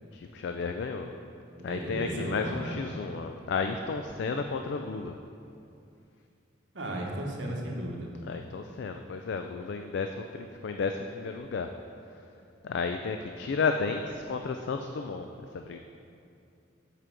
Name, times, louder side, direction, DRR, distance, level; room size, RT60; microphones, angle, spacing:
voice 1, 0.1-1.1 1.6-5.1 8.3-11.7 12.6-15.3 15.5-15.8, left 4 dB, 60° left, 6 dB, 0.3 m, -32 dB
voice 2, 1.6-2.8 6.7-8.1, right 1 dB, 70° right, -1 dB, 1.2 m, -35 dB
7.5 x 5.0 x 5.9 m, 2.6 s
head